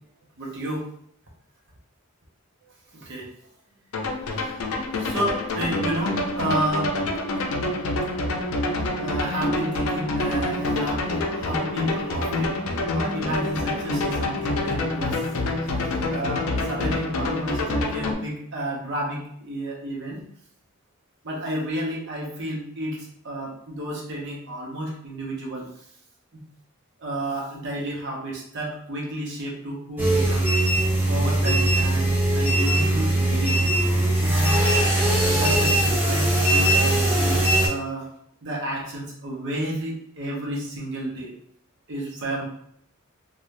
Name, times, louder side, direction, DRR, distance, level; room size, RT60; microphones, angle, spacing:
voice 1, 0.4-0.9 2.9-3.3 4.4-4.5 4.9-7.0 9.0-12.6 12.9-15.2 16.1-20.2 21.2-25.7 26.3-26.4 27.0-30.5 31.1-33.7 34.2-34.7 35.2-38.1 38.4-41.4 41.9-42.5, right 1 dB, 60° right, -3 dB, 0.8 m, -31 dB
sound 1, 3.9-18.1, left 2 dB, 70° left, 0.5 m, -27 dB
sound 2, 30.0-37.7, right 1 dB, 10° right, 0.6 m, -20 dB
2.6 x 2.3 x 3.1 m, 0.68 s
head